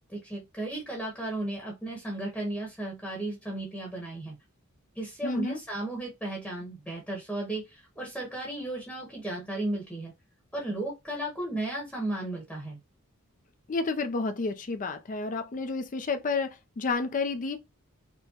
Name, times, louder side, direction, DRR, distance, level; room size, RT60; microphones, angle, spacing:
voice 1, 0.1-4.4 4.9-10.1 10.5-12.8, right 1 dB, 5° left, 0.9 m, -34 dB
voice 2, 5.2-5.6 13.7-17.6, left 3 dB, 35° left, 0.4 m, -30 dB
4.4 x 2.1 x 2.8 m
head